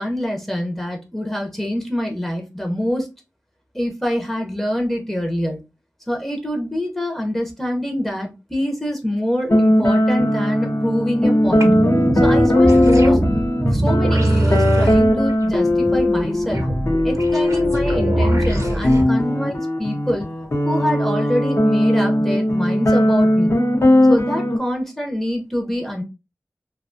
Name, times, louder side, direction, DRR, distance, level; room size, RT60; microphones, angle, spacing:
voice 1, 0.0-3.1 3.7-5.6 6.1-11.7 12.1-16.7 17.0-20.3 20.6-23.5 24.1-26.0, equal, 5° left, 1 dB, 0.6 m, -25 dB
sound 1, 9.5-24.6, left 1 dB, 50° left, 0.6 m, -18 dB
sound 2, 11.6-19.0, right 1 dB, 65° right, 0.7 m, -22 dB
2.4 x 2.2 x 2.5 m, 0.27 s
wide cardioid pair, 65°, 6 cm